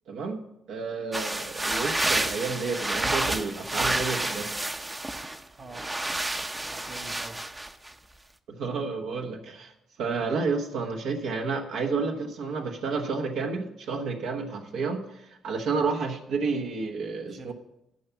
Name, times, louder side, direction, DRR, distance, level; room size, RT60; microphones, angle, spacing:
voice 1, 0.1-0.4 0.7-4.5 8.5-9.7 10.0-17.5, right 4 dB, 80° right, 2 dB, 1.2 m, -30 dB
sound 1, 1.1-5.4 5.7-7.9, right 1 dB, 15° right, 0.6 m, -29 dB
voice 2, 5.5-5.9 6.6-7.7 17.3-17.5, right 3 dB, 40° right, 6 dB, 1.4 m, -46 dB
10.5 x 5.8 x 7.0 m, 0.85 s
cardioid pair, 90°, 0 cm